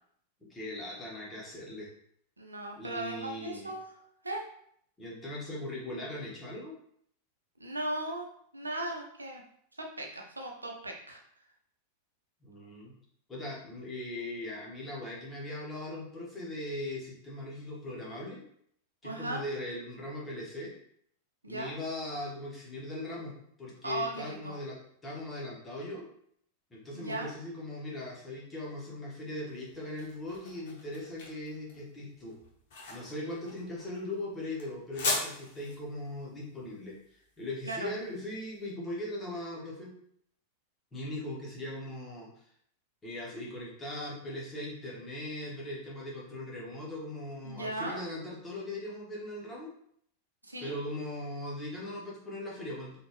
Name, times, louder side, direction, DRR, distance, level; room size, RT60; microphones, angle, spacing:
voice 1, 0.5-1.9 2.8-3.7 5.0-6.7 12.4-12.9 13.3-18.4 19.0-20.7 21.5-23.3 23.6-24.8 25.0-26.1 26.7-32.3 32.9-39.9 40.9-42.3 43.0-49.7 50.6-53.0, left 1 dB, 15° left, -5 dB, 1.5 m, -39 dB
voice 2, 2.4-3.8 4.2-4.5 7.6-8.3 8.5-9.4 9.7-11.2 19.0-19.4 21.4-21.7 23.8-24.6 26.9-27.3 37.6-37.9 47.4-48.0 50.4-50.7, right 2 dB, 80° right, 1 dB, 0.6 m, -37 dB
sound 1, 29.5-38.5, left 3 dB, 55° left, 1.2 m, -39 dB
4.3 x 2.8 x 3.2 m, 0.67 s
figure-of-eight pair, 90°, 0 cm